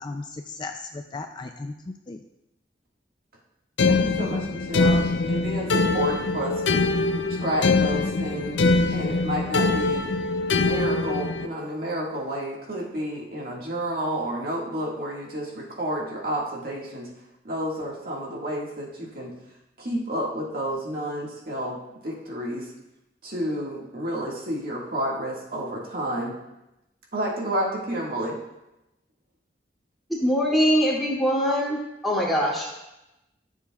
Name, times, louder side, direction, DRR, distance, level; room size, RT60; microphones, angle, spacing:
voice 1, 0.0-2.2, left 3 dB, 25° left, 5 dB, 0.4 m, -36 dB
sound 1, 3.8-11.5, left 3 dB, 85° left, 0.5 m, -23 dB
voice 2, 3.9-5.0 5.3-6.8 7.3-8.6 8.9-10.1 10.5-17.1 17.4-19.3 19.8-21.8 22.0-22.7 23.2-26.4 27.1-28.4, equal, 55° right, -3 dB, 1.9 m, -30 dB
voice 3, 30.1-32.7, equal, ahead, -6 dB, 2.6 m, -22 dB
14.0 x 7.3 x 2.4 m, 0.93 s
head